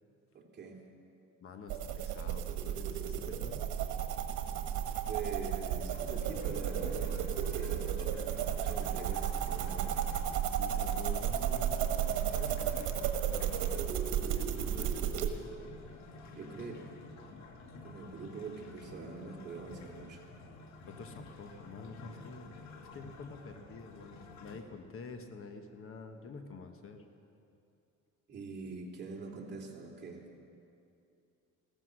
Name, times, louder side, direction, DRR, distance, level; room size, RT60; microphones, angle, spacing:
voice 1, 0.3-0.8 5.1-10.0 16.3-16.8 17.8-20.2 28.3-30.2, right 4 dB, 35° right, -2 dB, 2.8 m, -44 dB
voice 2, 1.4-3.6 10.5-14.0 14.3-15.6 20.9-22.5 22.8-27.1, left 4 dB, 45° left, 6 dB, 1.1 m, -48 dB
sound 1, 1.7-15.3, right 9 dB, 85° right, 1.3 m, -33 dB
sound 2, 5.9-24.6, left 3 dB, 70° left, 1.5 m, -51 dB
15.5 x 14.0 x 6.3 m, 2.6 s
cardioid pair, 125°, 29 cm